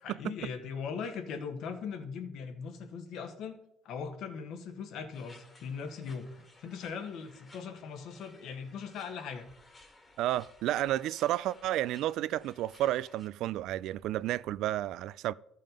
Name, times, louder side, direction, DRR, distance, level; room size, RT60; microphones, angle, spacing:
voice 1, 0.0-3.6 3.8-9.5, left 6 dB, 65° left, 1.5 m, -40 dB
sound 1, 5.1-13.3, left 2 dB, 20° left, 1.7 m, -58 dB
voice 2, 10.2-15.3, right 14 dB, 65° right, 0.3 m, -31 dB
13.5 x 5.5 x 5.2 m
cardioid pair, 110°, 0 cm